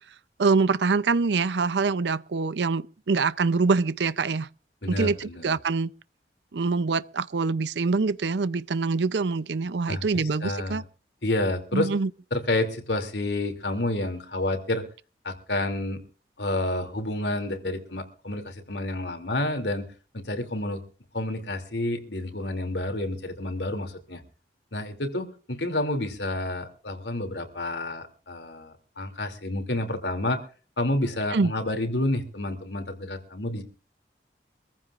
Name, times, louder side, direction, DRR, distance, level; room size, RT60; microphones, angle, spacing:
voice 1, 0.4-4.5 4.9-5.9 6.5-10.8 11.7-12.1 31.3-31.5, right 4 dB, 85° right, 0.6 m, -25 dB
voice 2, 4.8-5.5 9.9-10.8 11.2-11.9 12.3-14.8 15.2-16.0 16.4-19.9 20.1-20.8 21.1-24.2 24.7-30.4 30.8-33.6, left 1 dB, 80° left, 2.8 m, -29 dB
25.0 x 15.0 x 2.5 m
head